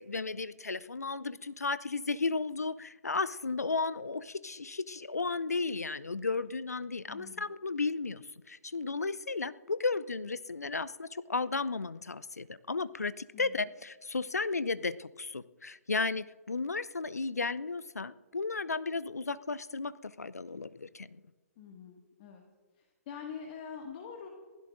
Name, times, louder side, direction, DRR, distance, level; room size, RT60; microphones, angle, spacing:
voice 1, 0.0-21.2, left 4 dB, 85° left, 16 dB, 0.6 m, -34 dB
voice 2, 7.1-7.5 13.3-13.6 21.6-22.4 22.7-24.3, left 6 dB, 40° left, 1 dB, 1.9 m, -45 dB
27.0 x 16.0 x 2.6 m, 1.4 s
figure-of-eight pair, 130°, 8 cm